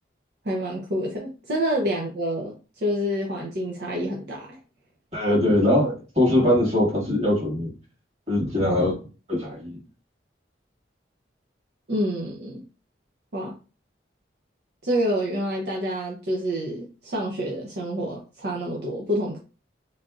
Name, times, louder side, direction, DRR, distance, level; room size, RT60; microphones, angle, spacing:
voice 1, 0.4-4.6 11.9-12.6 13.3-13.6 14.8-19.4, equal, 65° right, 0.7 m, -28 dB
voice 2, 5.1-7.7 8.3-9.0 9.3-9.8, left 1 dB, 35° right, 1.9 m, -21 dB
3.8 x 3.3 x 2.4 m
head